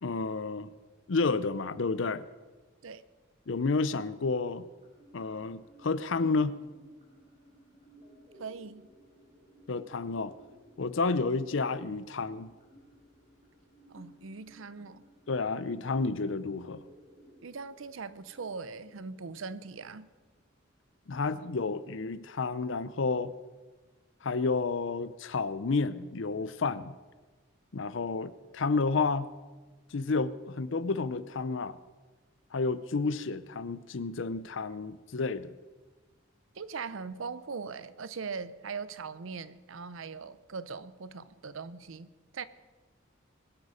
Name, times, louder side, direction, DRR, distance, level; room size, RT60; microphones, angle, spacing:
voice 1, 0.0-0.7 1.1-2.2 3.5-4.7 5.1-6.6 9.7-10.3 10.8-12.5 15.3-16.8 21.1-23.3 24.2-26.9 27.7-29.3 29.9-31.8 32.5-35.5, left 4 dB, 65° left, 15 dB, 0.6 m, -30 dB
sound 1, 4.8-20.8, equal, 30° right, 3.8 m, -59 dB
voice 2, 8.3-8.9 13.9-15.0 17.4-20.1 36.5-42.4, right 5 dB, 75° right, 15 dB, 0.6 m, -40 dB
22.0 x 8.2 x 5.1 m, 1.3 s
head